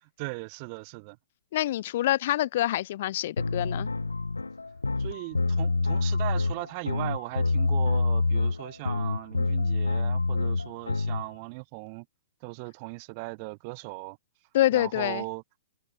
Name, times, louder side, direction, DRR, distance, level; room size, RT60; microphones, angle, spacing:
voice 1, 0.0-1.2 5.0-12.1 12.4-14.2 14.7-15.4, right 32 dB, 35° right, 2.3 m, -38 dB
voice 2, 1.5-3.9 14.5-15.2, left 14 dB, 45° left, 2.0 m, -26 dB
sound 1, 3.4-11.3, left 3 dB, 75° left, 1.3 m, -27 dB
figure-of-eight pair, 115°, 0 cm